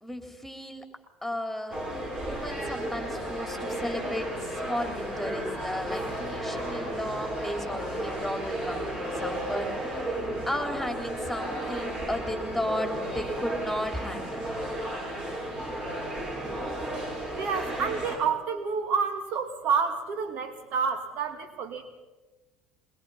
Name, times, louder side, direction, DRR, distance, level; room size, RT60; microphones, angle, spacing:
voice 1, 0.0-0.9 1.2-1.8 2.2-14.4, left 1 dB, 5° left, 6 dB, 3.5 m, -35 dB
sound 1, 1.7-18.2, right 1 dB, 30° right, 7.8 m, -33 dB
voice 2, 17.3-21.9, right 6 dB, 60° right, 8 dB, 2.4 m, -29 dB
22.5 x 21.5 x 5.7 m, 1.2 s
hypercardioid pair, 75°, 3 cm